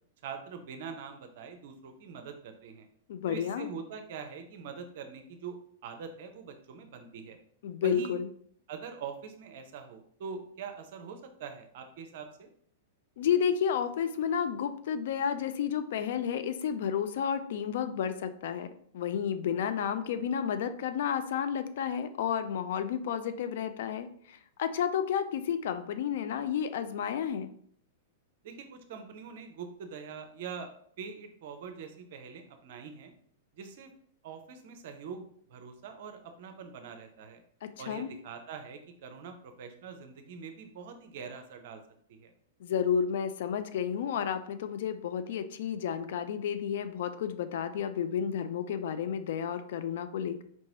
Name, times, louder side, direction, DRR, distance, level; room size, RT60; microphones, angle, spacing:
voice 1, 0.2-2.9 3.3-5.6 5.8-7.4 7.8-8.2 8.7-12.5 28.4-30.7 31.0-33.1 33.5-33.9 34.2-37.4 37.8-41.8 42.1-42.3, right 6 dB, 50° right, 6 dB, 0.5 m, -43 dB
voice 2, 3.1-3.7 7.6-8.3 13.2-18.7 18.9-27.5 37.6-38.1 42.6-50.4, left 8 dB, 55° left, 10 dB, 0.3 m, -31 dB
4.4 x 2.9 x 2.8 m, 0.62 s
figure-of-eight pair, 100°, 0 cm